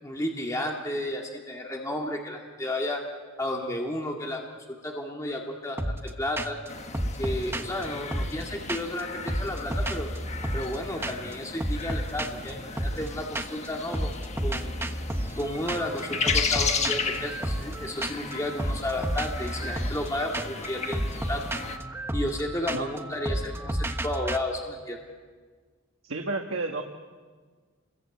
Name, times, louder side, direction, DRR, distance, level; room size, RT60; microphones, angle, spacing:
voice 1, 0.0-3.0 3.4-4.4 4.7-6.6 7.2-10.1 10.5-14.2 14.4-14.8 15.3-21.4 22.1-25.0, left 1 dB, 15° left, 0 dB, 2.1 m, -32 dB
sound 1, 5.8-6.1 6.4-6.7 6.9-9.0 9.3-10.8 11.0-11.3 11.6-13.7 13.9-24.4, right 1 dB, 10° right, 1.1 m, -32 dB
sound 2, 6.7-21.8, left 5 dB, 35° left, 1.4 m, -35 dB
voice 2, 26.0-26.8, right 3 dB, 85° right, 3 dB, 1.5 m, -31 dB
28.5 x 22.0 x 8.4 m, 1.5 s
head